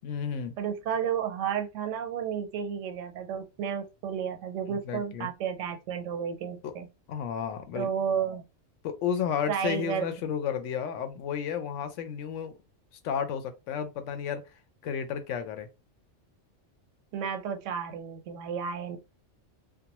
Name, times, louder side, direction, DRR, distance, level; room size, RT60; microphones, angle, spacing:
voice 1, 0.0-0.6 4.7-5.3 6.4-6.7 7.1-7.9 8.8-12.5 13.0-14.4 14.8-15.7, left 7 dB, 85° left, 0.9 m, -32 dB
voice 2, 0.6-6.9 7.8-8.4 9.5-10.1 17.1-19.0, right 7 dB, 90° right, 1.0 m, -32 dB
2.4 x 2.2 x 2.8 m
omnidirectional pair, 1.2 m